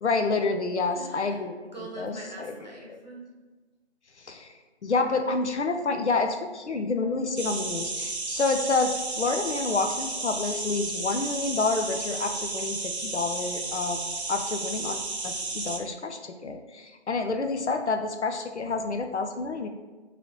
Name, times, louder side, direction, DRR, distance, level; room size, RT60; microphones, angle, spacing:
voice 1, 0.0-1.5 2.0-2.5 4.2-4.5 4.8-14.0 14.3-19.7, left 3 dB, 85° left, 6 dB, 0.5 m, -28 dB
voice 2, 0.8-3.2, right 2 dB, 40° right, -3 dB, 1.0 m, -43 dB
sound 1, 7.4-15.8, right 3 dB, 70° right, 0.7 m, -33 dB
3.8 x 3.2 x 3.0 m, 1.3 s
figure-of-eight pair, 170°, 34 cm